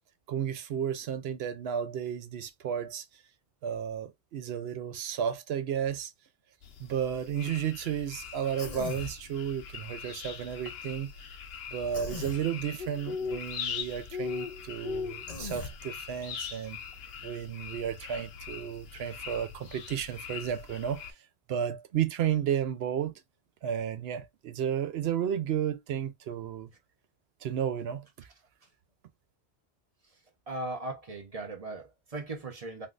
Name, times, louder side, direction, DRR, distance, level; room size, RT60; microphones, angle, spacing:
voice 1, 0.3-3.1 3.6-6.1 6.8-11.1 11.7-16.8 17.2-21.0 21.5-23.1 23.6-26.7 27.4-28.0, right 9 dB, 70° right, 0.8 m, -33 dB
sound 1, 6.6-21.1, left 6 dB, 70° left, 0.8 m, -41 dB
Human voice, 8.6-9.2 11.9-12.4 15.3-15.7, left 4 dB, 40° left, 0.8 m, -38 dB
voice 2, 30.5-32.9, right 2 dB, 35° right, 0.8 m, -38 dB
3.6 x 2.4 x 2.5 m
omnidirectional pair, 1.1 m